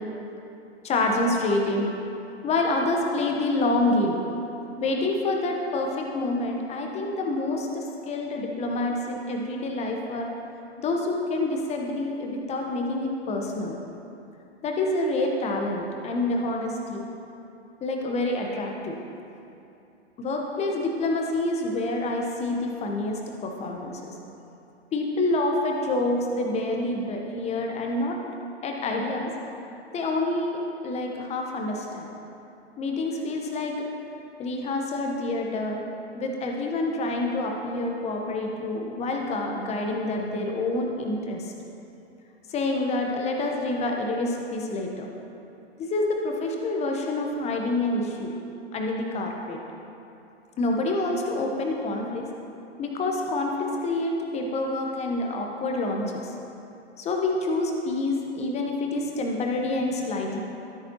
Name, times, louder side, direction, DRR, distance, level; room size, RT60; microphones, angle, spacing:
voice 1, 0.8-1.9 2.4-4.2 4.8-10.3 10.8-13.7 14.6-17.1 17.8-19.0 20.2-24.1 24.9-28.2 28.6-29.3 29.9-32.1 32.8-33.9 34.4-35.8 36.1-41.5 42.5-45.1 45.8-48.3 48.7-49.6 50.6-52.3 52.8-56.3 57.0-60.4, left 2 dB, 20° left, 1 dB, 1.1 m, -27 dB
13.0 x 8.6 x 3.0 m, 2.8 s
figure-of-eight pair, 105°, 34 cm